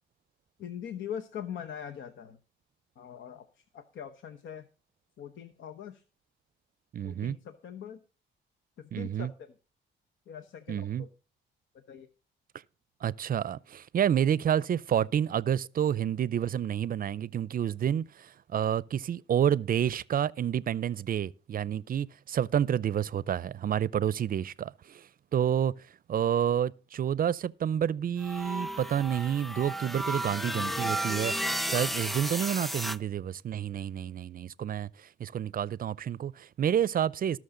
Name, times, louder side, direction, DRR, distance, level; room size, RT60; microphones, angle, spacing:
voice 1, 0.6-2.4 3.0-4.7 5.2-6.0 7.0-8.0 8.8-9.5 10.3-11.1 11.7-12.1, left 8 dB, 70° left, 1.0 m, -42 dB
voice 2, 6.9-7.4 8.9-9.3 10.7-11.0 13.0-25.7 26.1-37.4, right 9 dB, 45° right, 0.5 m, -29 dB
sound 1, 28.2-33.0, right 1 dB, ahead, 0.4 m, -33 dB
18.5 x 6.3 x 3.8 m
cardioid pair, 90°, 20 cm